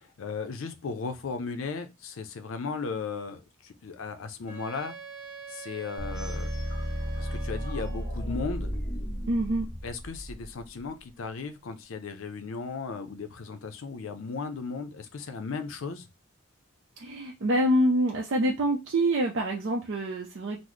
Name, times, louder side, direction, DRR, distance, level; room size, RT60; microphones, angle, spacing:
voice 1, 0.0-4.9 5.5-6.5 7.2-8.7 9.8-16.1, left 4 dB, 70° left, 0.5 m, -36 dB
Wind instrument woodwind instrument, 4.5-8.2, right 6 dB, 40° right, 0.9 m, -44 dB
sound 1, 6.0-10.9, equal, 15° left, 0.7 m, -34 dB
voice 2, 9.3-9.7 17.0-20.6, right 1 dB, 60° right, 0.5 m, -26 dB
3.8 x 2.0 x 3.0 m
head